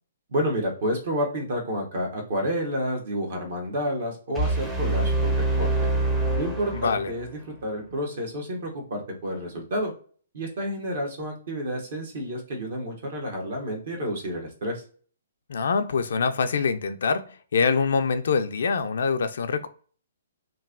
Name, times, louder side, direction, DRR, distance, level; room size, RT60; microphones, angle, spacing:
voice 1, 0.3-5.9 6.4-7.3 7.6-9.9 10.3-14.8, equal, 60° right, 2 dB, 1.1 m, -30 dB
sound 1, 4.4-7.4, right 2 dB, 5° right, 0.5 m, -25 dB
voice 2, 6.7-7.1 15.5-19.7, left 5 dB, 70° left, 8 dB, 0.3 m, -25 dB
3.0 x 2.6 x 2.3 m, 0.43 s
hypercardioid pair, 150°, 0 cm